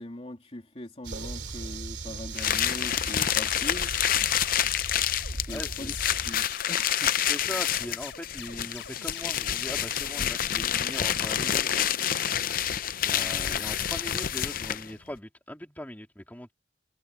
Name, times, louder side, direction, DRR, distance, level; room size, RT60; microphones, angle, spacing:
voice 1, 0.0-3.9 5.3-5.9 6.2-7.3 13.2-13.5, left 1 dB, 35° left, 2.8 m, -41 dB
sound 1, 1.0-6.5, right 2 dB, 70° right, 2.8 m, -39 dB
sound 2, 2.3-14.9, left 10 dB, 50° left, 0.6 m, -28 dB
sound 3, 3.4-11.3, left 7 dB, 85° left, 4.9 m, -44 dB
voice 2, 5.5-6.0 7.3-11.9 13.0-16.5, left 1 dB, 10° left, 3.6 m, -40 dB
head